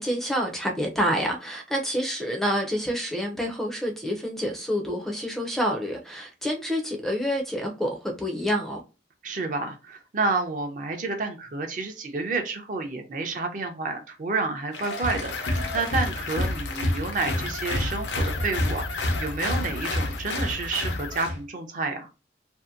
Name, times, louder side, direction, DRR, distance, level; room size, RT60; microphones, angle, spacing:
voice 1, 0.0-8.8, equal, ahead, 0.4 m, -28 dB
voice 2, 9.2-22.1, right 3 dB, 45° right, 0.5 m, -30 dB
Applause, 14.7-21.4, left 1 dB, 90° left, 0.7 m, -29 dB
sound 1, 15.3-21.2, left 6 dB, 75° left, 0.3 m, -39 dB
2.7 x 2.5 x 2.4 m
head